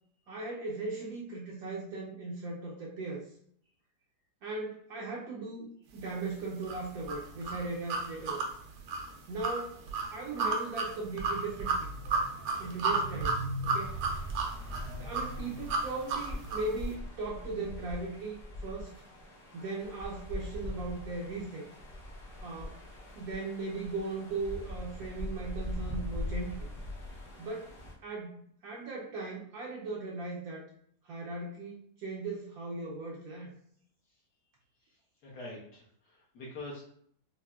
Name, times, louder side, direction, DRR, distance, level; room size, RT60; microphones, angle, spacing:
voice 1, 0.3-3.2 4.4-5.7 5.9-8.5 9.3-9.8 10.1-11.9 12.6-14.0 14.9-18.9 19.5-21.7 22.4-22.8 23.1-26.5 27.4-30.7 31.0-33.5, right 3 dB, 70° right, -4 dB, 1.0 m, -38 dB
sound 1, 6.7-16.7, right 3 dB, 90° right, 1.2 m, -33 dB
sound 2, 13.8-27.9, left 1 dB, 60° left, 1.0 m, -42 dB
voice 2, 34.7-36.8, left 2 dB, 75° left, -6 dB, 1.3 m, -46 dB
4.1 x 2.0 x 2.2 m, 0.64 s
omnidirectional pair, 1.8 m